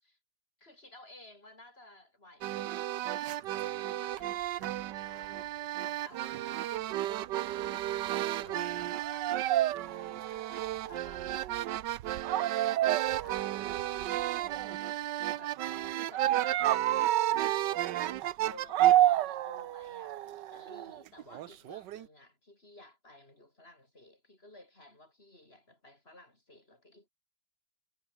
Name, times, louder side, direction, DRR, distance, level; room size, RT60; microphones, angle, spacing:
voice 1, 0.6-3.5 3.8-11.8 12.3-14.1 14.8-15.0 15.4-15.5 16.1-17.0 17.5-27.1, left 1 dB, 30° left, 7.4 m, -56 dB
sound 1, 2.4-22.0, right 13 dB, 70° right, 1.3 m, -31 dB
omnidirectional pair, 2.1 m